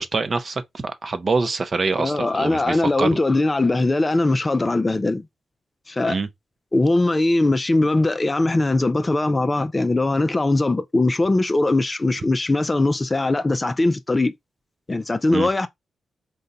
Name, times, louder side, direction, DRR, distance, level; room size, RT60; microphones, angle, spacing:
voice 1, 0.0-3.1 6.0-6.3 15.3-15.5, right 4 dB, 45° right, 0.6 m, -25 dB
voice 2, 2.0-5.3 5.9-6.2 6.7-14.3 14.9-15.7, left 2 dB, 25° left, 0.4 m, -20 dB
3.9 x 2.2 x 3.9 m
cardioid pair, 80°, 0 cm